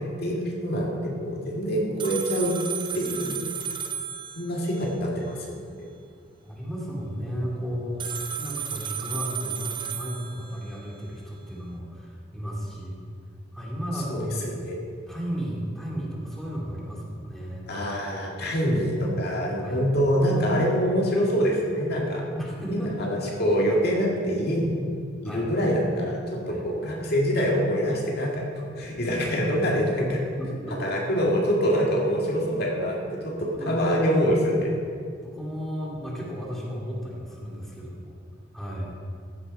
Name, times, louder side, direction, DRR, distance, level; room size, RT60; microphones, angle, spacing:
voice 1, 0.0-2.6 2.9-3.4 4.4-5.4 14.1-14.8 17.7-22.2 22.7-24.8 25.2-28.5 28.8-30.2 30.8-34.7, equal, 60° left, -2 dB, 2.0 m, -25 dB
sound 1, 2.0-4.9 8.0-10.9, right 8 dB, 25° right, 0.6 m, -34 dB
voice 2, 6.4-13.0 13.5-14.4 15.1-17.7 19.6-19.8 22.4-23.1 25.2-25.5 26.5-26.6 30.4-30.5 33.5-33.8 35.2-38.2 38.5-39.0, equal, ahead, -5 dB, 2.4 m, -34 dB
15.0 x 6.9 x 5.4 m, 2.3 s
head